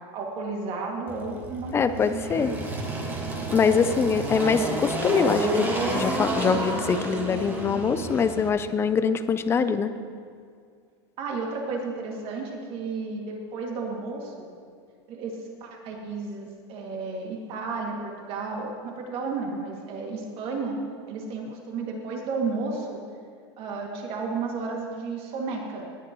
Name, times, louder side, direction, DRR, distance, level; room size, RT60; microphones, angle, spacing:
voice 1, 0.1-2.6 2.9-3.0 3.7-3.9 4.4-4.7 11.2-14.5 15.1-20.8 21.1-23.0 23.6-25.9, right 4 dB, 40° right, 0 dB, 2.3 m, -33 dB
Engine, 1.1-8.5, right 1 dB, 15° right, 1.6 m, -30 dB
voice 2, 1.7-2.5 3.5-9.9, left 6 dB, 15° left, 11 dB, 0.5 m, -24 dB
18.0 x 10.5 x 3.1 m, 2.2 s
supercardioid pair, 140°, 14 cm